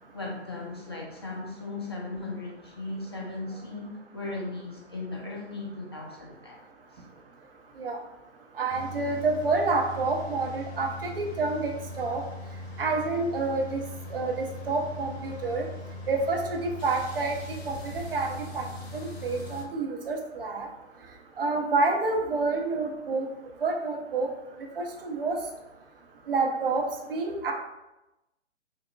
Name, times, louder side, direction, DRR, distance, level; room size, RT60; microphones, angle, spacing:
voice 1, 0.1-6.6 6.9-7.0, left 2 dB, 25° left, -2 dB, 0.4 m, -37 dB
voice 2, 8.6-11.7 12.0-12.2 12.8-13.8 14.1-15.7 16.1-17.3 17.7-18.6 18.9-20.7 21.4-23.3 23.6-24.3 24.8-25.4 26.3-26.8 27.1-27.5, right 3 dB, 55° right, 2 dB, 0.7 m, -28 dB
sound 1, 8.7-19.6, left 2 dB, 60° left, 0.7 m, -40 dB
6.0 x 2.2 x 2.3 m, 0.95 s
figure-of-eight pair, 135°, 35 cm